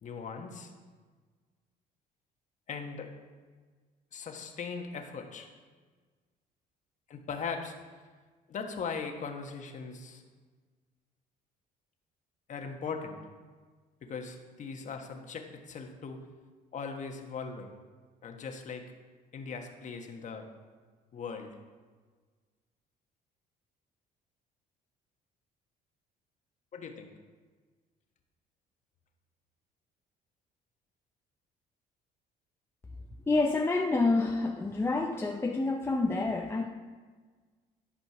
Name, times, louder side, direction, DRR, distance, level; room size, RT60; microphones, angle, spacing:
voice 1, 0.0-0.7 2.7-3.1 4.1-5.5 7.1-7.7 8.5-10.2 12.5-13.2 14.1-16.2 16.7-17.7 18.2-18.8 19.3-20.5 21.1-21.5 26.7-27.1, left 5 dB, 45° left, 4 dB, 1.3 m, -39 dB
voice 2, 33.3-36.7, left 3 dB, 15° left, 2 dB, 0.6 m, -28 dB
11.5 x 5.1 x 6.0 m, 1.5 s
cardioid pair, 110°, 17 cm